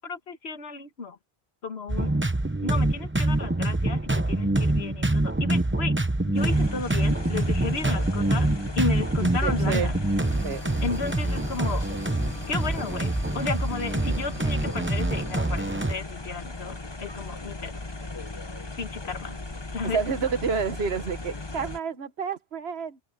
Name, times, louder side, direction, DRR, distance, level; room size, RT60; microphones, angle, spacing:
voice 1, 0.0-1.2 1.6-2.1 2.6-5.9 6.3-8.5 8.7-10.0 10.8-11.9 12.5-17.7 18.8-19.4 19.7-20.0, left 4 dB, 80° left, 1.7 m, -33 dB
sound 1, 1.9-15.9, right 2 dB, 10° right, 0.8 m, -25 dB
sound 2, 6.3-21.8, left 2 dB, 25° left, 1.1 m, -37 dB
voice 2, 9.4-9.9 10.4-10.6 19.8-23.0, right 6 dB, 75° right, 1.5 m, -29 dB
omnidirectional pair, 1.1 m